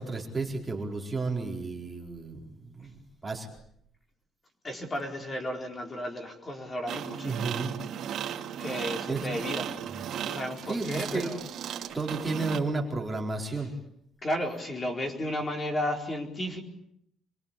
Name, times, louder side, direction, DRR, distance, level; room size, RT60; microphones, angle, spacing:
voice 1, 0.0-3.5 7.2-7.8 9.1-9.2 10.7-11.3 11.9-13.7, right 3 dB, 15° right, 0 dB, 4.5 m, -32 dB
voice 2, 4.6-7.4 8.6-9.7 10.2-11.4 14.2-16.6, left 1 dB, 20° left, 3 dB, 4.4 m, -33 dB
sound 1, 6.9-12.6, right 9 dB, 55° right, 2.8 m, -36 dB
27.5 x 23.5 x 8.6 m, 0.71 s
cardioid pair, 165°, 0 cm